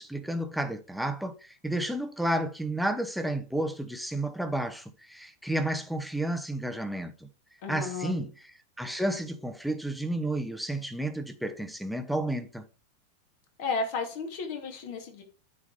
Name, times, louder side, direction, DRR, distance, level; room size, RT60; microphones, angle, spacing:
voice 1, 0.0-7.3 7.7-8.3 8.8-12.6, right 1 dB, ahead, 0.9 m, -31 dB
voice 2, 7.6-8.1 13.6-15.2, left 4 dB, 50° left, 2.3 m, -33 dB
9.3 x 4.8 x 4.8 m
figure-of-eight pair, 90°, 0 cm